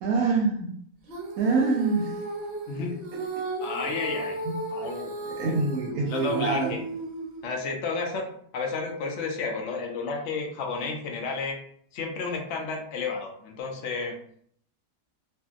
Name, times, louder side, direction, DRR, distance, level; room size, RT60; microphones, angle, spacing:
voice 1, 0.0-0.7 1.4-2.1 4.5-4.6 5.3-6.7, right 4 dB, 70° right, 1 dB, 1.0 m, -25 dB
Female singing, 1.1-7.6, right 2 dB, 55° right, 0.7 m, -35 dB
voice 2, 2.7-3.0 3.6-4.4 4.7-5.2 6.0-6.8 7.4-8.3 8.5-11.6 11.9-14.1, left 4 dB, 70° left, 1 dB, 0.7 m, -31 dB
2.6 x 2.6 x 2.4 m, 0.64 s
omnidirectional pair, 1.7 m